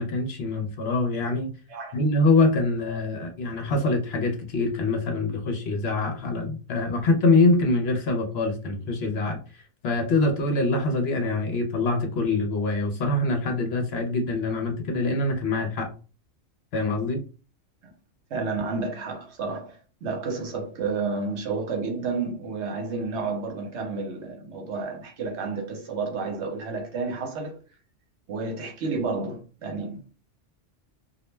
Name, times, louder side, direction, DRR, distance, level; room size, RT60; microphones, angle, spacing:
voice 1, 0.0-1.5 1.9-15.9 16.7-17.2, left 2 dB, 65° left, 0.8 m, -24 dB
voice 2, 18.3-27.6 28.3-30.0, right 4 dB, 70° right, 1.0 m, -31 dB
2.3 x 2.1 x 3.1 m
omnidirectional pair, 1.3 m